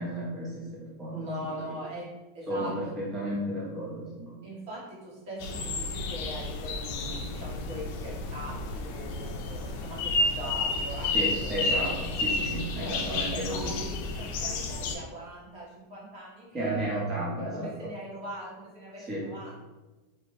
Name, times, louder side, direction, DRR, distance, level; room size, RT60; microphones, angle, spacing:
voice 1, 0.0-1.3 2.5-4.5 11.1-13.7 16.5-17.9 19.1-19.3, right 1 dB, 20° right, -6 dB, 0.5 m, -33 dB
voice 2, 1.1-2.1 2.3-2.7 4.4-11.1 11.4-11.9 12.8-13.0 13.3-17.0 17.5-19.5, equal, 60° right, -7 dB, 1.3 m, -41 dB
sound 1, 5.4-15.0, left 2 dB, 60° left, 0.4 m, -31 dB
2.6 x 2.0 x 2.9 m, 1.2 s
supercardioid pair, 150°, 0 cm